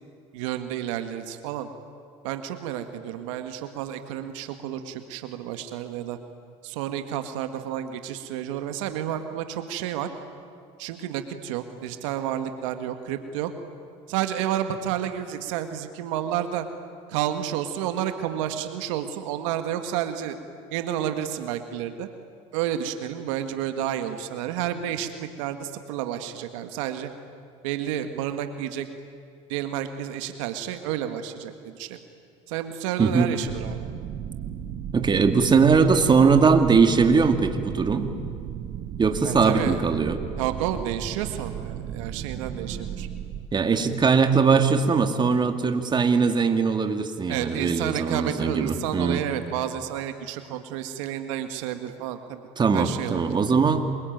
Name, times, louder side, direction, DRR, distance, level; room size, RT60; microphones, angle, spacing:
voice 1, 0.3-1.7 2.2-6.2 6.6-10.1 10.8-13.5 14.1-16.7 17.1-20.4 20.7-22.1 22.5-27.1 27.6-28.9 29.5-32.0 32.5-33.8 39.2-39.8 40.4-43.1 47.3-52.4 52.7-53.3, right 10 dB, 85° right, 8 dB, 1.8 m, -30 dB
sound 1, 33.5-43.5, right 9 dB, 55° right, 1.6 m, -35 dB
voice 2, 34.9-38.1 39.0-40.2 43.5-49.2 52.6-53.8, right 5 dB, 30° right, 7 dB, 2.4 m, -20 dB
27.5 x 23.5 x 9.3 m, 2.3 s
supercardioid pair, 85°, 16 cm